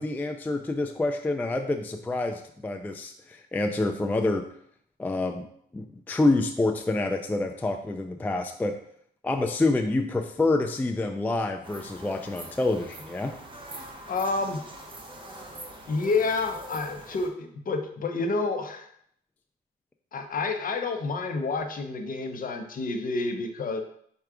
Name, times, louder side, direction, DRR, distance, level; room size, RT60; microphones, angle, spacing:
voice 1, 0.0-4.4 5.0-5.5 5.7-8.7 9.2-13.3, left 2 dB, 10° left, 5 dB, 0.3 m, -27 dB
sound 1, 11.6-17.3, right 1 dB, 25° right, 0.8 m, -44 dB
voice 2, 14.1-14.6 15.9-18.9 20.1-23.8, left 3 dB, 45° left, 5 dB, 0.7 m, -29 dB
4.5 x 2.3 x 4.8 m, 0.67 s
cardioid pair, 90°, 20 cm